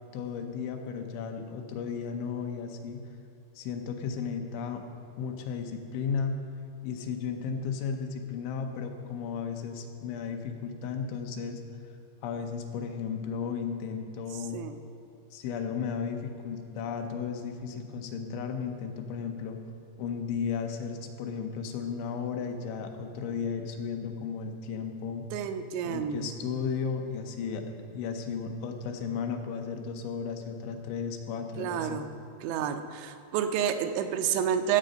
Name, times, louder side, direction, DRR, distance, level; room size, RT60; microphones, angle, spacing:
voice 1, 0.1-3.0 3.6-4.8 5.2-6.4 6.8-11.6 12.2-14.6 15.3-19.6 20.0-25.3 25.9-27.6 27.9-32.0, left 6 dB, 90° left, 4 dB, 3.3 m, -34 dB
voice 2, 25.3-26.3 31.6-32.1 32.4-34.8, right 8 dB, 85° right, 7 dB, 3.0 m, -29 dB
16.5 x 7.6 x 5.2 m, 2.6 s
omnidirectional pair, 5.2 m